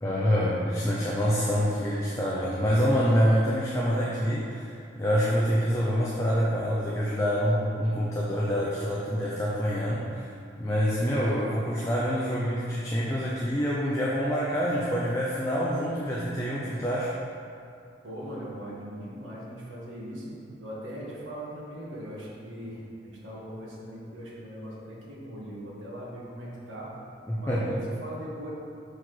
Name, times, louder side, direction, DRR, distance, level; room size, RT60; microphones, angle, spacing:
voice 1, 0.0-10.3 10.6-17.1 27.3-27.8, equal, 15° left, -6 dB, 0.7 m, -26 dB
voice 2, 18.0-27.0 27.3-27.7 28.0-28.5, equal, 80° right, -6 dB, 1.9 m, -40 dB
5.9 x 5.0 x 6.2 m, 2.5 s
head